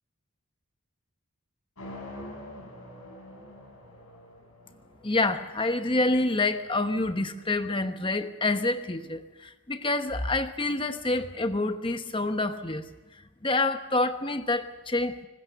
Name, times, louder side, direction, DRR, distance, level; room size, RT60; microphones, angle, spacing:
sound 1, 1.8-7.8, left 1 dB, 85° left, 6.4 m, -46 dB
voice 1, 5.0-12.9 13.4-15.3, left 2 dB, 25° left, 9 dB, 1.0 m, -27 dB
26.0 x 19.5 x 6.8 m, 1.1 s
head